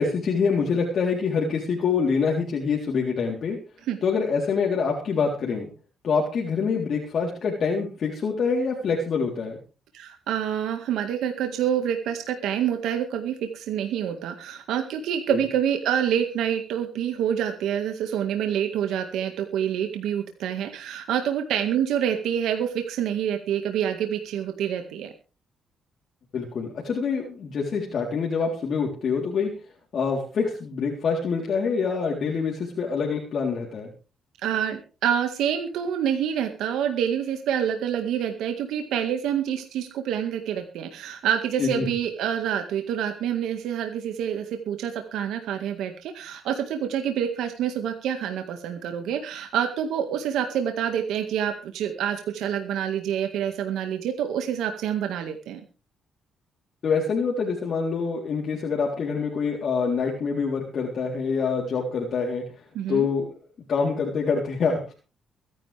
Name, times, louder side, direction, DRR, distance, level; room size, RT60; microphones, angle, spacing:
voice 1, 0.0-3.6 4.0-5.7 6.0-9.6 15.3-15.4 26.3-29.5 29.9-33.9 41.6-41.9 56.8-62.4 62.9-63.3 63.7-64.9, left 5 dB, 55° left, -2 dB, 3.7 m, -25 dB
voice 2, 9.9-25.1 34.4-55.6 62.7-63.1, right 9 dB, 85° right, 5 dB, 1.9 m, -27 dB
23.5 x 11.0 x 3.5 m, 0.35 s
cardioid pair, 90°, 0 cm